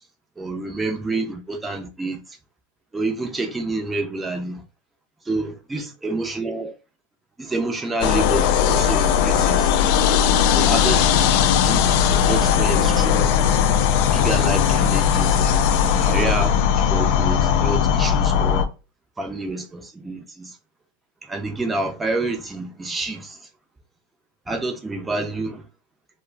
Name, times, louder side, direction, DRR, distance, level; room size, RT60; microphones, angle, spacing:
voice 1, 0.4-2.4 2.9-4.7 5.2-6.7 7.4-9.7 10.5-11.1 11.6-13.4 14.1-15.7 16.0-18.7 19.2-20.6 21.2-23.5 24.5-25.7, right 2 dB, 10° right, 0.5 m, -28 dB
sound 1, 8.0-18.7, left 8 dB, 55° left, 0.3 m, -18 dB
2.3 x 2.0 x 3.3 m
hypercardioid pair, 110°, 0 cm